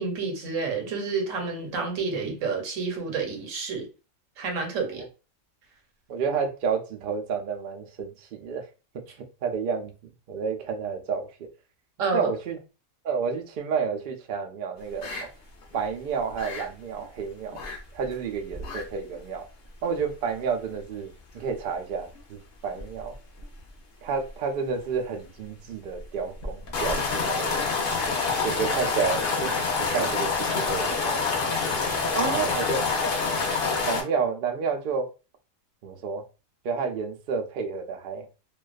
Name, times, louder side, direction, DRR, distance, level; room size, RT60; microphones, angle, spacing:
voice 1, 0.0-3.9 4.4-5.0 12.0-12.3 32.1-32.4, right 4 dB, 80° right, 1.1 m, -29 dB
voice 2, 6.1-8.7 8.9-9.9 10.3-11.5 12.1-12.6 13.0-15.3 15.7-17.6 17.9-19.5 19.8-23.1 24.0-27.6 28.4-29.5 29.8-31.2 32.2-32.8 33.3-33.5 33.8-35.1 35.8-36.2 36.6-38.3, right 5 dB, 65° right, 0.5 m, -30 dB
sound 1, 15.0-15.2 15.6-15.8 16.1-16.6 17.5-17.8 18.0-18.1 18.5-18.8 19.1-19.2 19.9-20.0 22.8-23.0 23.4-23.5 26.4-34.0, left 4 dB, 55° left, 0.6 m, -27 dB
2.4 x 2.2 x 2.3 m
omnidirectional pair, 1.3 m